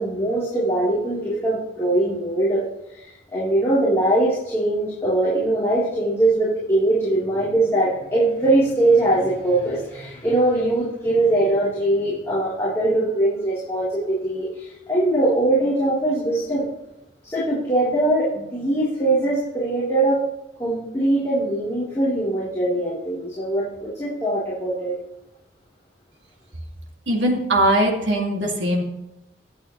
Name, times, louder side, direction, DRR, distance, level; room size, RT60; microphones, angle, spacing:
voice 1, 0.0-2.6 2.9-16.7 17.2-20.2 20.6-25.0, right 1 dB, 15° left, -9 dB, 3.6 m, -21 dB
voice 2, 27.1-28.8, right 1 dB, 75° right, 0 dB, 2.4 m, -20 dB
23.0 x 8.7 x 3.2 m, 0.92 s
head